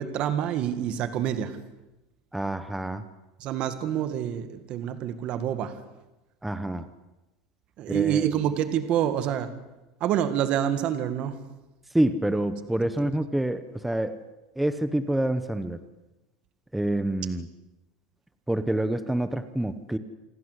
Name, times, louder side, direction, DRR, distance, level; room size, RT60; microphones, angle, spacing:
voice 1, 0.0-1.6 3.4-5.7 7.8-9.5 10.0-11.4, right 10 dB, 35° right, 10 dB, 1.9 m, -27 dB
voice 2, 2.3-3.0 6.4-6.9 7.9-8.3 11.9-14.2 14.6-15.8 16.7-17.5 18.5-20.0, right 1 dB, 5° right, 11 dB, 0.8 m, -27 dB
28.5 x 21.0 x 8.1 m, 1.0 s
supercardioid pair, 180°, 3 cm